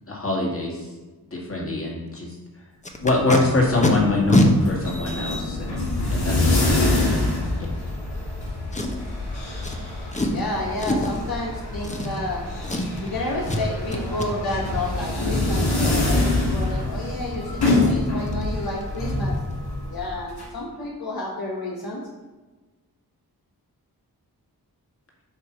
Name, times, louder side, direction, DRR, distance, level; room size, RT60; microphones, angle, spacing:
voice 1, 0.1-0.8 1.3-2.3 3.0-5.8 6.1-7.1, left 2 dB, 35° left, -3 dB, 2.0 m, -24 dB
Packing tape duct tape, 2.8-3.4 3.8-3.9 4.3-4.5 5.3-5.4 8.7-9.1 9.6-9.8 10.1-10.4 10.8-11.2 11.8-12.4 12.6-13.1 13.5-13.6 13.9-14.3 17.3-17.4 17.7-17.9 18.3-18.4 18.7-19.0 19.2-19.3, left 1 dB, 20° left, 0.8 m, -23 dB
sound 1, 3.6-20.4, left 2 dB, 90° left, 1.7 m, -26 dB
voice 2, 10.2-12.5 13.0-19.4 19.9-22.0, left 2 dB, 65° left, -3 dB, 1.1 m, -30 dB
8.0 x 2.7 x 5.9 m, 1.2 s
cardioid pair, 60°, 39 cm